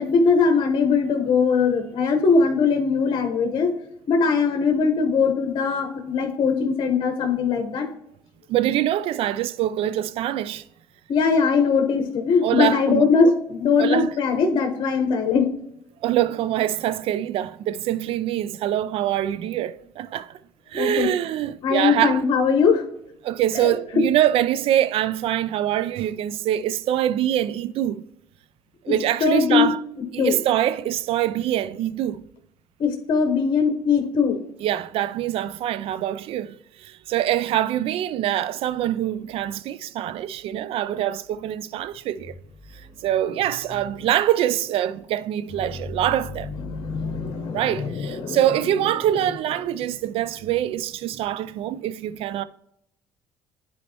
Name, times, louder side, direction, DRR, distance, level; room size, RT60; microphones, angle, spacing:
voice 1, 0.0-3.7 4.1-7.9 11.1-15.5 20.7-21.1 21.6-22.8 23.5-23.7 29.2-29.7 30.2-30.4 32.8-34.4 46.6-48.4, left 5 dB, 50° left, 1.2 m, -21 dB
voice 2, 8.5-10.6 12.4-13.3 13.8-14.1 16.0-20.4 20.7-22.2 23.2-28.0 28.8-29.8 30.1-32.2 34.6-42.4 42.7-46.5 47.5-52.4, right 12 dB, 65° right, 0.4 m, -24 dB
10.0 x 4.2 x 3.0 m
supercardioid pair, 80°, 10 cm